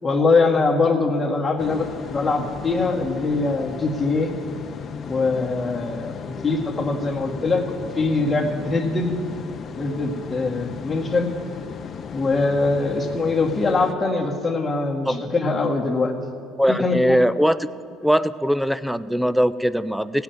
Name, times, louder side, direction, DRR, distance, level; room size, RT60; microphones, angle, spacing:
voice 1, 0.0-4.3 5.0-7.6 7.9-9.1 9.8-11.3 12.1-16.1 16.7-17.0, left 3 dB, 20° left, -1 dB, 1.9 m, -22 dB
sound 1, 1.6-13.9, left 6 dB, 45° left, 0.6 m, -36 dB
voice 2, 16.6-17.7 18.0-20.2, equal, ahead, 15 dB, 0.4 m, -21 dB
16.0 x 5.9 x 9.1 m, 2.3 s
supercardioid pair, 85°, 0 cm